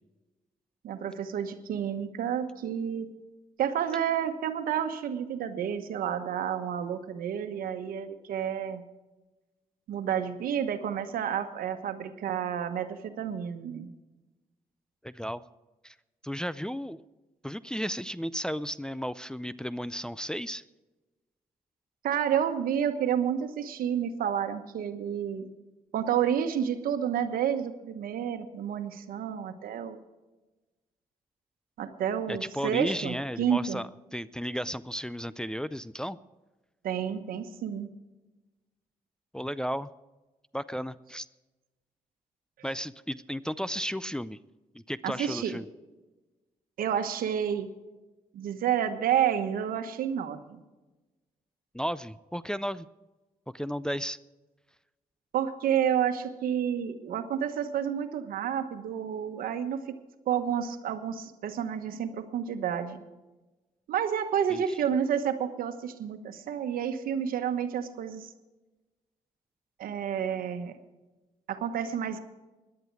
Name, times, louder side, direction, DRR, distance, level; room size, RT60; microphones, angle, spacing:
voice 1, 0.8-3.1 3.6-8.8 9.9-13.9 22.0-25.5 25.9-30.0 31.8-33.8 36.8-37.9 45.0-45.5 46.8-47.7 48.3-50.6 55.3-59.8 60.3-63.0 63.9-68.3 69.8-70.8 71.5-72.2, right 9 dB, 80° right, 9 dB, 1.2 m, -30 dB
voice 2, 15.0-15.4 15.8-16.0 16.2-17.0 17.4-20.6 32.3-36.2 39.3-39.9 40.5-41.3 42.6-44.4 44.7-45.7 51.7-52.9 53.5-54.2 64.5-64.6, equal, 5° left, 14 dB, 0.5 m, -34 dB
17.5 x 11.0 x 4.7 m, 1.1 s
cardioid pair, 70°, 15 cm